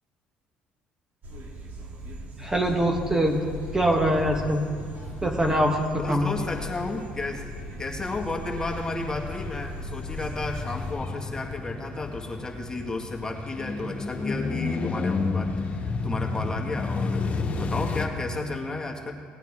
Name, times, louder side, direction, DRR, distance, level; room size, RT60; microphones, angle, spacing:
sound 1, 1.2-10.9, equal, 60° right, 1.7 m, -40 dB
sound 2, 2.4-18.1, left 3 dB, 40° left, 1.6 m, -33 dB
voice 1, 2.4-4.6 5.2-6.3, equal, 15° right, 2 dB, 1.3 m, -24 dB
voice 2, 6.0-7.5 7.8-15.5 15.8-19.1, left 2 dB, 20° left, 0 dB, 1.8 m, -33 dB
18.0 x 9.0 x 3.6 m, 2.1 s
supercardioid pair, 75°, 4 cm